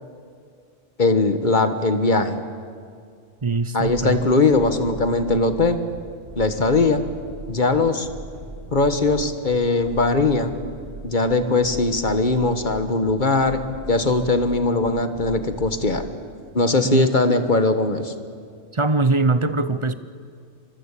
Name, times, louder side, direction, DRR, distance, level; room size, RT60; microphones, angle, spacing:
voice 1, 1.0-2.4 3.7-5.8 6.3-7.0 7.5-8.1 8.7-10.5 11.0-13.6 13.9-16.0 16.5-18.1, left 3 dB, 40° left, 9 dB, 1.5 m, -20 dB
voice 2, 3.4-4.2 16.8-17.1 18.7-19.9, right 3 dB, 30° right, 13 dB, 0.8 m, -21 dB
sound 1, 3.8-16.0, right 2 dB, 45° right, 7.8 m, -39 dB
25.0 x 24.5 x 8.4 m, 2.2 s
omnidirectional pair, 1.3 m